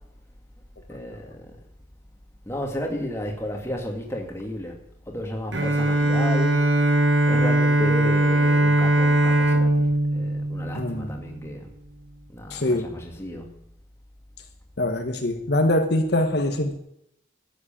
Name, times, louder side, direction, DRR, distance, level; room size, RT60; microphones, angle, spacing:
voice 1, 0.9-1.5 2.5-4.8 5.1-6.7 7.3-11.7 12.3-13.6, equal, 15° left, 2.3 m, -33 dB
Bowed string instrument, 5.5-11.4, right 1 dB, 85° right, 1.7 m, -20 dB
voice 2, 10.7-11.2 12.5-13.0 14.8-16.8, left 1 dB, 60° left, 1.4 m, -24 dB
13.0 x 8.0 x 9.0 m
head